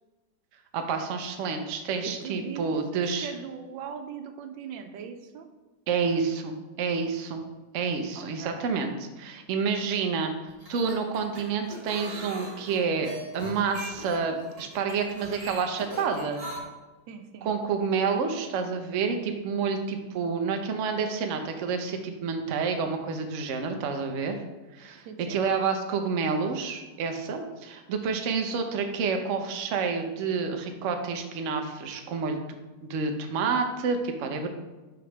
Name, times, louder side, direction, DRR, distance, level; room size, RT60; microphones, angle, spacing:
voice 1, 0.7-3.3 5.9-7.4 7.7-16.4 17.4-24.4 24.7-32.4 32.8-34.5, right 5 dB, 60° right, 5 dB, 0.9 m, -29 dB
voice 2, 2.0-5.5 8.1-8.6 17.1-17.5 25.0-25.4, right 7 dB, 90° right, 7 dB, 1.4 m, -40 dB
sound 1, 10.5-16.6, equal, 20° right, 1.6 m, -40 dB
4.9 x 4.0 x 5.9 m, 1.2 s
omnidirectional pair, 1.9 m